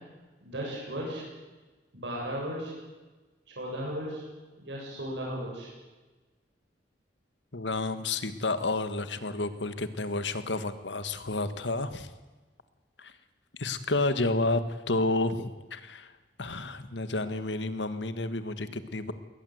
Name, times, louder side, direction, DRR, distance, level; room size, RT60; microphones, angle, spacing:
voice 1, 0.4-1.2 1.9-2.7 3.6-4.2 4.6-5.7, equal, 80° right, -3 dB, 7.6 m, -35 dB
voice 2, 7.5-12.1 13.0-13.1 13.6-16.1 16.4-19.1, left 2 dB, 80° left, 12 dB, 1.6 m, -30 dB
22.0 x 19.0 x 8.1 m, 1.2 s
head